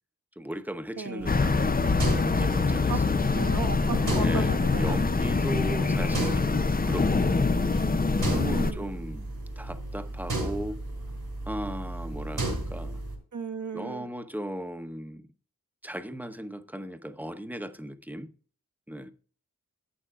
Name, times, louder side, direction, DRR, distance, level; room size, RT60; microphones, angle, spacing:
voice 1, 0.4-1.7 2.3-3.3 4.2-7.5 8.3-10.8 11.5-13.0 13.7-15.2 15.8-18.3 18.9-19.1, equal, 5° right, 0.9 m, -37 dB
voice 2, 1.0-1.3 2.9-3.0 3.3-5.0 8.3-8.9 13.3-14.1, right 5 dB, 50° right, 1.1 m, -35 dB
sound 1, 1.2-13.2, right 2 dB, 80° right, 3.2 m, -35 dB
sound 2, 1.3-8.7, left 4 dB, 25° left, 0.5 m, -25 dB
11.0 x 8.6 x 2.4 m
wide cardioid pair, 40°, 37 cm